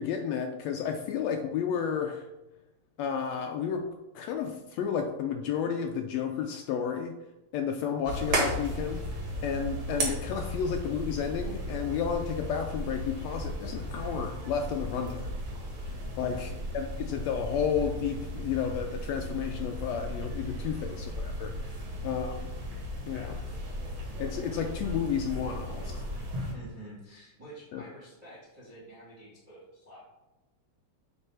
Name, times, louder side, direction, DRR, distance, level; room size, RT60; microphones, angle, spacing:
voice 1, 0.0-2.3 3.0-7.1 7.5-9.0 9.4-15.3 16.2-21.8 22.0-22.4 23.1-23.4 24.2-26.0 27.7-27.8, left 7 dB, 85° left, 4 dB, 1.5 m, -32 dB
sound 1, 8.0-26.5, equal, 50° right, 2.1 m, -35 dB
voice 2, 16.0-16.4 21.8-22.2 26.5-30.1, right 1 dB, 15° right, -9 dB, 2.1 m, -49 dB
7.8 x 3.9 x 4.4 m, 0.99 s
omnidirectional pair, 3.6 m